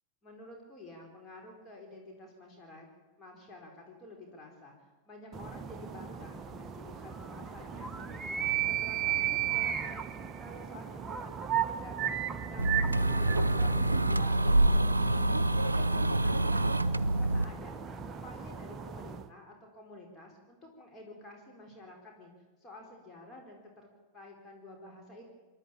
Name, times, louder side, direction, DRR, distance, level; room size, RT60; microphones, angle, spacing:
voice 1, 0.2-2.9 3.2-4.7 5.0-10.0 10.4-15.2 15.6-16.9 17.2-22.3 22.6-23.9 24.1-25.3, left 1 dB, 20° left, 0 dB, 4.6 m, -50 dB
sound 1, 5.3-19.3, right 9 dB, 25° right, 1.0 m, -36 dB
sound 2, 12.6-17.4, right 1 dB, 80° right, 0.6 m, -26 dB
28.5 x 11.0 x 8.8 m, 1.2 s
figure-of-eight pair, 90°, 0 cm